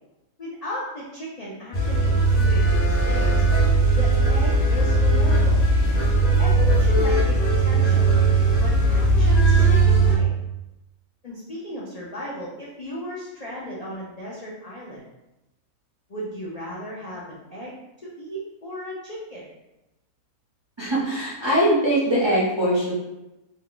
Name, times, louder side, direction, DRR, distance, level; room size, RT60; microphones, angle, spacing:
voice 1, 0.4-3.4 3.8-5.7 6.4-8.2 8.6-10.3 11.2-15.0 16.1-17.8 18.2-19.4, equal, 70° left, -6 dB, 0.3 m, -35 dB
sound 1, 1.7-10.2, right 2 dB, 40° left, 0.8 m, -18 dB
voice 2, 20.8-22.9, equal, 35° right, -8 dB, 0.4 m, -21 dB
2.7 x 2.3 x 3.7 m, 0.95 s
omnidirectional pair, 1.5 m